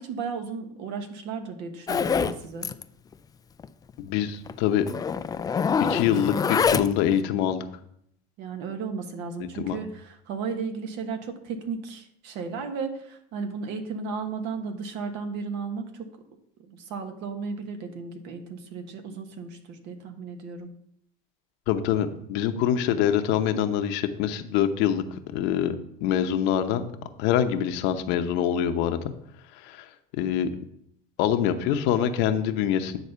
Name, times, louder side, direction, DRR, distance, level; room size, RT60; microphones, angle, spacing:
voice 1, 0.0-2.7 8.4-16.1 16.7-20.7, right 5 dB, 65° right, 6 dB, 1.5 m, -34 dB
Zipper (clothing), 1.9-2.4 2.6-2.8 3.1-3.2 3.6-3.7 4.5-4.6 4.9-7.1, left 6 dB, 20° left, 0.4 m, -25 dB
voice 2, 4.0-4.9 5.9-7.6 9.4-9.8 21.7-25.8 26.0-26.8 27.2-29.1 29.6-29.8 30.1-30.5 31.2-33.0, left 10 dB, 70° left, 8 dB, 0.9 m, -25 dB
9.6 x 4.1 x 6.8 m, 0.71 s
supercardioid pair, 115°, 19 cm